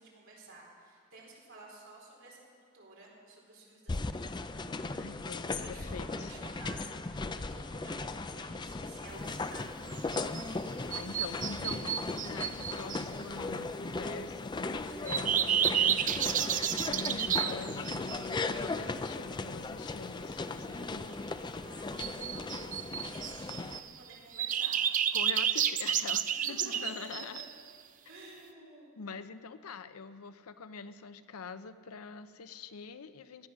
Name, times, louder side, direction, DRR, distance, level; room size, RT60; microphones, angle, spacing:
voice 1, 0.0-10.4 21.6-25.1 26.3-27.1 28.1-28.9, right 2 dB, 60° right, -3 dB, 4.0 m, -53 dB
sound 1, 3.9-23.8, left 3 dB, 20° left, 0.4 m, -37 dB
voice 2, 4.9-6.3 10.8-21.1 25.1-27.4 29.0-33.5, left 5 dB, 85° left, 12 dB, 0.6 m, -45 dB
sound 2, 9.9-10.4 10.9-13.0 15.1-18.3 22.0-23.9 24.3-27.7, right 9 dB, 35° right, 0.4 m, -31 dB
17.0 x 11.0 x 6.2 m, 2.2 s
head